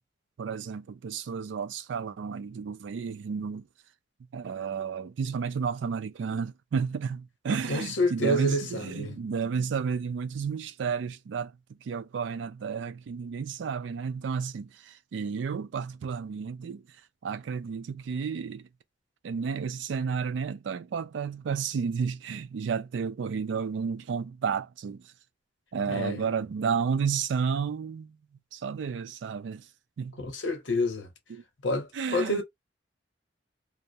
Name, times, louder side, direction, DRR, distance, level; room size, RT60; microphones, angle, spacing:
voice 1, 0.4-3.7 4.3-16.8 17.2-18.7 19.2-25.1 25.7-28.2 28.5-29.7 30.0-30.1 31.3-31.4 31.9-32.4, right 6 dB, 70° right, 0.3 m, -32 dB
voice 2, 7.5-9.2 25.9-26.2 30.2-31.1 31.6-32.4, left 1 dB, 75° left, 0.9 m, -29 dB
2.3 x 2.0 x 2.7 m
head